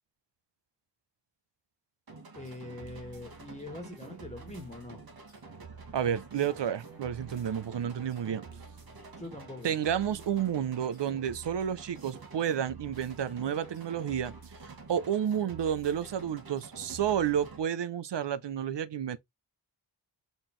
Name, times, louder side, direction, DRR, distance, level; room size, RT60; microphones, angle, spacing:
sound 1, 2.1-17.6, right 4 dB, 55° right, 1.4 m, -48 dB
voice 1, 2.3-5.0 9.2-9.7, left 2 dB, 15° left, 1.6 m, -43 dB
voice 2, 5.9-8.5 9.6-14.3 14.9-19.2, right 9 dB, 75° right, 0.6 m, -31 dB
4.1 x 3.9 x 3.1 m
wide cardioid pair, 80°, 43 cm